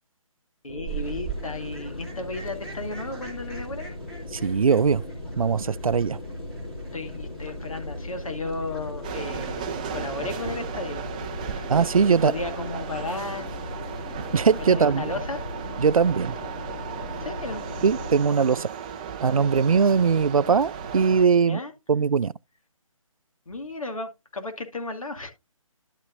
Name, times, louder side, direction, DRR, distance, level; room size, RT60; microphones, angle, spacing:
voice 1, 0.6-3.9 6.9-11.1 11.5-11.8 12.1-13.5 14.7-15.4 17.1-17.6 21.5-21.7 23.5-25.3, left 3 dB, 75° left, 2.1 m, -34 dB
sound 1, 0.7-18.2, left 2 dB, 50° left, 3.4 m, -38 dB
Fowl, 0.9-14.7, right 7 dB, 5° left, 2.5 m, -44 dB
voice 2, 4.3-5.0 5.4-6.2 11.7-12.3 14.3-15.1 15.8-16.3 17.8-18.7 19.2-21.6 21.9-22.3, right 6 dB, 85° right, 0.4 m, -21 dB
sound 2, 9.0-21.3, right 7 dB, 15° right, 0.5 m, -36 dB
11.5 x 6.7 x 2.5 m
figure-of-eight pair, 155°, 18 cm